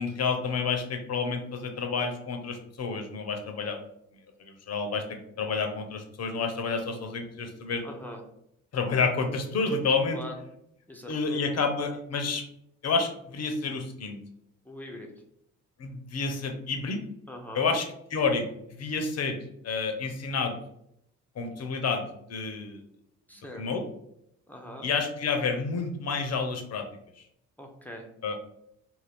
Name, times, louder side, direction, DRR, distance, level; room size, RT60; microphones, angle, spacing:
voice 1, 0.0-3.8 4.4-7.8 8.7-10.2 11.1-12.4 12.8-14.2 15.8-17.0 17.5-17.8 18.1-18.5 18.8-19.4 19.6-20.5 21.4-22.0 22.3-22.8 23.5-23.8 24.8-26.8 28.2-28.4, left 4 dB, 40° left, 5 dB, 0.7 m, -29 dB
voice 2, 7.8-8.2 10.1-10.4 10.9-11.4 14.6-15.1 17.3-17.7 23.3-23.7 24.5-24.9 27.6-28.1, left 1 dB, 5° left, 1 dB, 0.6 m, -42 dB
2.5 x 2.3 x 3.4 m, 0.76 s
hypercardioid pair, 50°, 38 cm